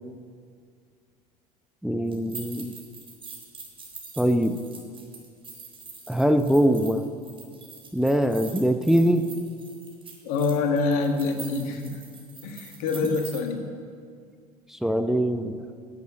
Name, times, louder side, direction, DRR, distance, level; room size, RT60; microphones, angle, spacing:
voice 1, 1.8-2.7 4.2-4.6 6.1-7.1 7.9-9.2 13.0-13.2 14.7-15.6, equal, ahead, 8 dB, 0.7 m, -22 dB
sound 1, 2.1-13.4, right 4 dB, 30° right, 3.7 m, -44 dB
voice 2, 10.2-12.0 12.4-13.6, left 4 dB, 70° left, 4 dB, 1.7 m, -26 dB
11.5 x 8.2 x 7.7 m, 2.2 s
hypercardioid pair, 70°, 19 cm